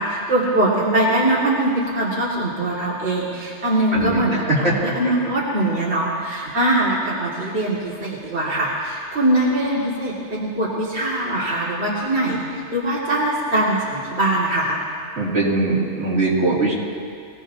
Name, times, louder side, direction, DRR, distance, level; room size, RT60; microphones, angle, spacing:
voice 1, 0.0-14.8, right 1 dB, 65° right, -7 dB, 2.4 m, -22 dB
voice 2, 4.5-4.9 15.2-16.7, right 2 dB, 80° right, -6 dB, 3.1 m, -21 dB
24.0 x 17.0 x 2.8 m, 2.2 s
omnidirectional pair, 1.2 m